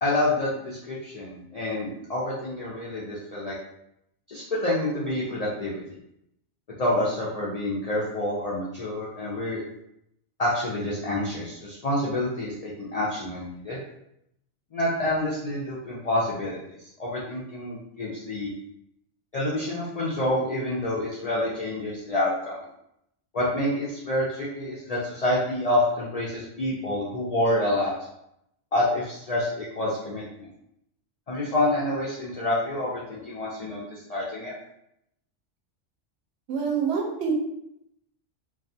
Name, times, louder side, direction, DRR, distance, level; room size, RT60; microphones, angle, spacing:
voice 1, 0.0-3.5 4.3-5.8 6.8-9.6 10.4-13.8 14.7-18.5 19.3-22.6 23.3-27.9 28.7-30.5 31.3-34.5, left 1 dB, 60° left, -6 dB, 0.4 m, -28 dB
voice 2, 36.5-37.3, right 6 dB, 70° right, 0 dB, 0.8 m, -26 dB
2.3 x 2.3 x 2.6 m, 0.79 s
omnidirectional pair, 1.2 m